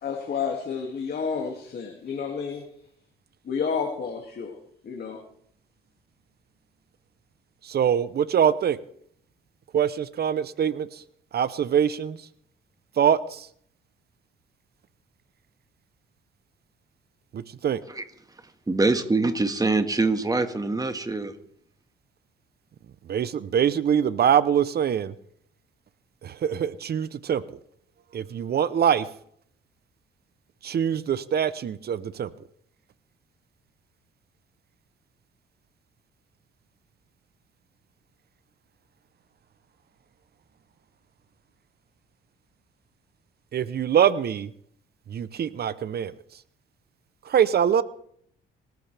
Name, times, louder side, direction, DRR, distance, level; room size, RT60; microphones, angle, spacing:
voice 1, 0.0-2.6 3.4-4.6 4.8-5.2, left 6 dB, 50° left, 1 dB, 2.4 m, -30 dB
voice 2, 7.6-8.8 9.7-11.0 11.3-12.2 13.0-13.5 17.3-17.8 23.1-25.1 26.2-27.4 28.1-29.1 30.6-32.3 43.5-44.5 45.1-46.1 47.2-47.8, right 8 dB, 55° right, 16 dB, 0.8 m, -23 dB
voice 3, 18.7-21.3, right 3 dB, 20° right, 8 dB, 1.7 m, -24 dB
26.0 x 14.0 x 3.4 m, 0.66 s
cardioid pair, 90°, 20 cm